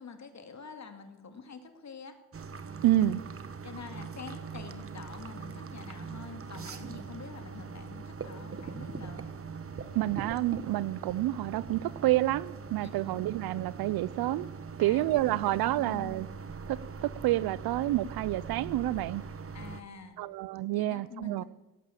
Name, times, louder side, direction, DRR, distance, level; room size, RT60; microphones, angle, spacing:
voice 1, 0.0-2.2 3.2-3.3 3.6-9.2 12.8-13.1 14.8-16.1 19.5-20.2 20.7-21.4, left 5 dB, 50° left, 2.2 m, -46 dB
sound 1, 2.3-19.8, right 5 dB, 40° right, 1.2 m, -42 dB
voice 2, 2.8-3.2 9.9-14.5 14.8-16.3 16.7-19.2 20.2-21.4, right 15 dB, 80° right, 0.5 m, -28 dB
17.0 x 8.6 x 7.5 m
cardioid pair, 70°, 36 cm